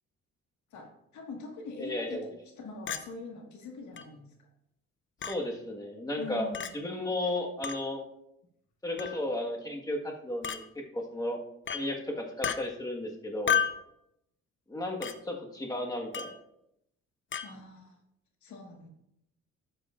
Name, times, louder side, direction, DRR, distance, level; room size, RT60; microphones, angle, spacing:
voice 1, 0.7-4.3 6.2-6.7 17.4-18.0 18.4-18.9, left 3 dB, 70° left, 2 dB, 1.7 m, -43 dB
voice 2, 1.8-2.3 5.3-8.0 8.8-11.4 11.7-13.6 14.7-16.3, left 1 dB, 10° left, 0 dB, 1.5 m, -34 dB
Chink clink, 2.9-3.0 4.0-4.1 5.2-5.4 6.5-6.7 7.6-7.8 9.0-9.2 10.4-10.6 11.7-11.8 12.4-12.6 13.5-13.8 15.0-15.2 16.1-16.4 17.3-17.5, left 8 dB, 40° left, 0.6 m, -31 dB
11.5 x 8.0 x 2.5 m, 0.80 s
cardioid pair, 90°, 30 cm